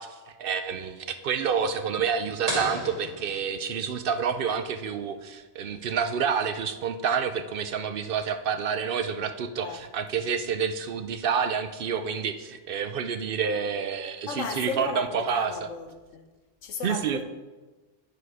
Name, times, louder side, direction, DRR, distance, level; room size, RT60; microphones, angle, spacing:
voice 1, 0.0-15.5 16.8-17.2, right 6 dB, 60° right, 0.6 m, -28 dB
sound 1, 2.5-4.1, right 1 dB, 85° right, 2.4 m, -34 dB
voice 2, 14.3-16.2 16.6-17.2, left 5 dB, 85° left, 1.2 m, -35 dB
9.8 x 4.8 x 4.8 m
omnidirectional pair, 1.3 m